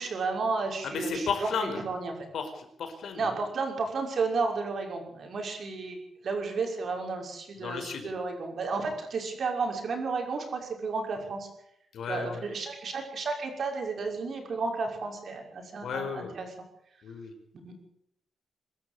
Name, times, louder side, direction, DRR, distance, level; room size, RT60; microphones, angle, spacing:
voice 1, 0.0-2.1 3.2-6.0 6.2-11.5 12.1-16.5 17.6-17.7, right 4 dB, 50° right, 3 dB, 6.0 m, -32 dB
voice 2, 0.8-1.8 2.3-3.5 7.5-8.1 11.9-12.5 15.8-16.3 17.0-17.3, left 5 dB, 70° left, 6 dB, 4.9 m, -34 dB
24.5 x 13.0 x 8.6 m, 0.74 s
wide cardioid pair, 165°, 0 cm